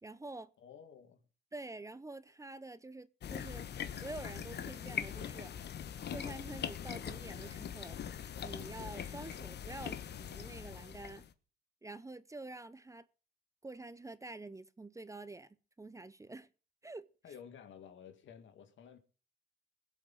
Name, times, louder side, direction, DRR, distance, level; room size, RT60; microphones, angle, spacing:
voice 1, 0.0-0.5 1.5-3.7 3.9-5.5 6.1-8.0 8.4-11.2 11.8-13.1 13.6-16.5 16.8-17.1, right 2 dB, 15° right, 0.7 m, -47 dB
voice 2, 0.6-1.3 17.2-19.0, left 7 dB, 75° left, 2.0 m, -53 dB
sound 1, 3.2-11.3, left 8 dB, 55° left, 1.1 m, -42 dB
22.0 x 8.0 x 4.0 m
cardioid pair, 90°, 20 cm